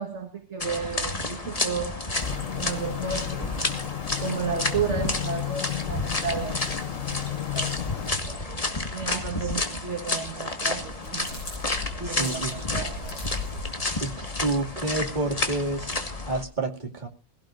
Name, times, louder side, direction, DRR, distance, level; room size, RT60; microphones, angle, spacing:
voice 1, 0.0-2.0 2.5-3.5 4.2-6.6 7.0-8.6 8.9-11.3 12.0-13.2, right 6 dB, 40° right, 1.7 m, -33 dB
sound 1, 0.6-16.4, left 2 dB, 20° left, 1.6 m, -31 dB
sound 2, 2.2-8.1, left 11 dB, 55° left, 1.1 m, -33 dB
sound 3, 10.8-13.7, left 3 dB, 85° left, 6.3 m, -38 dB
voice 2, 12.0-12.5 14.0-15.9 16.3-17.1, right 2 dB, 25° right, 2.3 m, -29 dB
20.0 x 16.5 x 2.5 m
omnidirectional pair, 1.9 m